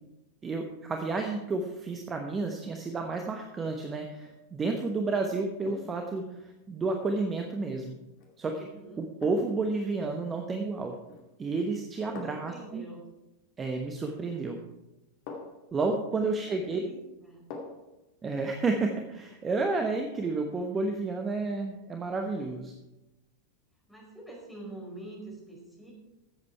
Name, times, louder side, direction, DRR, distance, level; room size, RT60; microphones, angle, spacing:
voice 1, 0.4-7.9 8.4-8.7 9.0-11.0 11.4-12.8 13.6-14.6 15.7-16.8 18.2-22.7, right 3 dB, 20° right, 4 dB, 1.1 m, -31 dB
sound 1, 4.1-4.4 5.6-6.1 8.2-8.4 9.2-9.7 11.0-11.4 12.1-12.6 14.3-14.4 15.3-15.7 17.5-17.9 18.3-18.4, left 3 dB, 45° left, 2.3 m, -44 dB
voice 2, 8.7-9.0 12.1-13.0 16.4-17.5 23.9-25.9, right 2 dB, 5° left, -3 dB, 4.8 m, -46 dB
14.5 x 8.0 x 4.6 m, 0.98 s
figure-of-eight pair, 90°, 0 cm